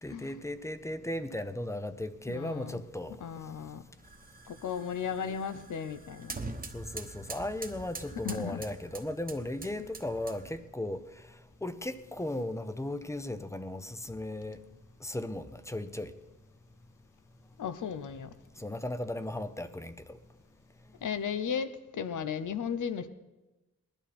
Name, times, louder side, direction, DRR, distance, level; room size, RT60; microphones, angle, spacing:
voice 1, 0.0-3.2 6.7-11.4 11.6-14.6 15.0-16.1 18.6-20.2, left 1 dB, 10° left, 0.6 m, -36 dB
voice 2, 2.3-2.8 3.2-3.8 4.5-6.3 8.2-8.6 17.6-18.3 21.0-23.1, left 7 dB, 85° left, 0.8 m, -35 dB
sound 1, 4.0-10.7, right 3 dB, 30° right, 1.1 m, -45 dB
20.0 x 12.0 x 4.3 m
wide cardioid pair, 170°, 30 cm